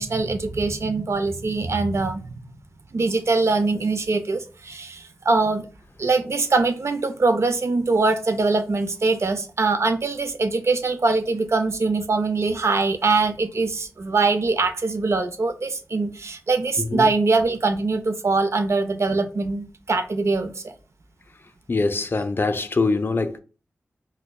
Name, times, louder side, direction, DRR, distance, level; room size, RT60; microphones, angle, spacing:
voice 1, 0.0-2.3 2.9-5.7 6.0-20.7, right 3 dB, 60° right, 0.5 m, -23 dB
voice 2, 21.7-23.4, left 3 dB, 45° left, 0.4 m, -23 dB
6.0 x 2.1 x 2.2 m
wide cardioid pair, 65°, 5 cm